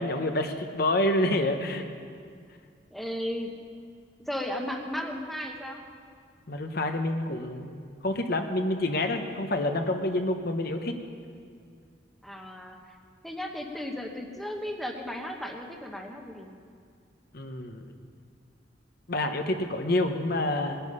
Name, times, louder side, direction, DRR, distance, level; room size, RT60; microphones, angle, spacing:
voice 1, 0.0-1.9 6.5-11.0 17.3-17.8 19.1-20.8, left 1 dB, 55° left, 5 dB, 1.0 m, -28 dB
voice 2, 2.9-3.5 4.3-5.8 12.2-12.8 13.2-16.5, left 1 dB, ahead, 1 dB, 1.0 m, -35 dB
19.0 x 10.0 x 5.5 m, 2.2 s
head